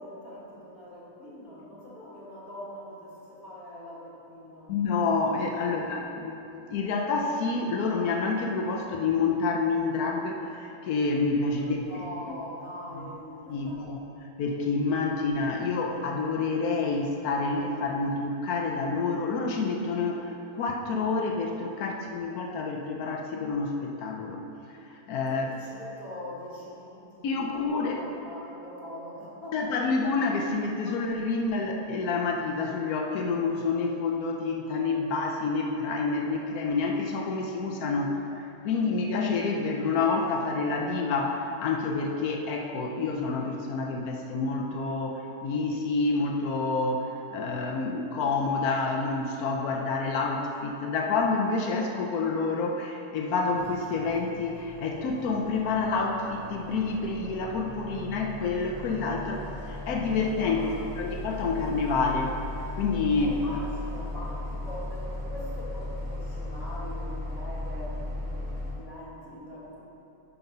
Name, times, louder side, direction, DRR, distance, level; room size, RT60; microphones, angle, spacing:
voice 1, 0.0-4.7 5.3-6.2 11.7-13.8 25.3-27.5 27.8-29.8 60.5-60.8 63.2-69.8, left 1 dB, 70° left, -8 dB, 2.7 m, -43 dB
voice 2, 4.7-11.9 12.9-13.0 13.5-14.0 14.4-24.4 24.7-25.5 27.2-28.0 29.5-38.3 38.6-62.4 62.7-63.4, left 4 dB, 85° left, 2 dB, 1.3 m, -28 dB
sound 1, 53.5-68.7, left 1 dB, 55° right, 1.9 m, -37 dB
9.9 x 5.7 x 5.3 m, 2.8 s
omnidirectional pair, 1.5 m